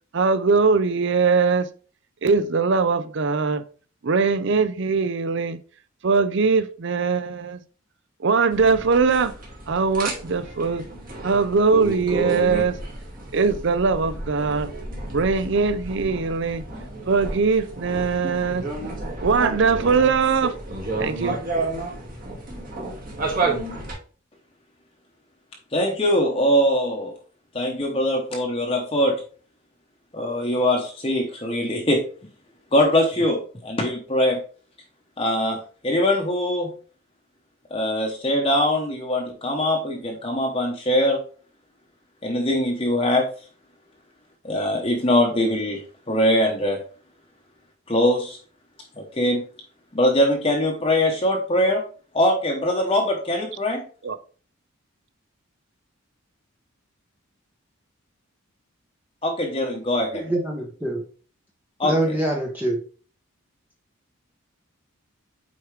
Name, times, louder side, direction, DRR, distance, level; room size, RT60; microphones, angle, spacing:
voice 1, 0.1-1.7 2.2-3.6 4.0-5.6 6.0-7.6 8.2-9.3 9.7-10.8 11.2-12.8 13.3-14.7 15.1-16.6 17.1-18.6 19.2-20.6 21.0-21.4 54.0-54.2, right 4 dB, 55° right, 0.5 m, -21 dB
sound 1, 8.5-23.9, right 2 dB, 40° right, 2.1 m, -31 dB
voice 2, 25.7-27.1 27.5-29.2 30.1-32.0 32.7-34.4 35.2-36.7 37.7-41.2 42.2-43.3 44.4-45.8 46.1-46.8 47.9-48.4 49.0-49.4 49.9-51.8 52.1-53.8 59.2-60.2 61.8-62.2, left 1 dB, 25° left, 1.0 m, -22 dB
voice 3, 60.1-61.0 61.8-62.8, right 1 dB, 10° right, 0.8 m, -25 dB
8.3 x 4.7 x 3.2 m
head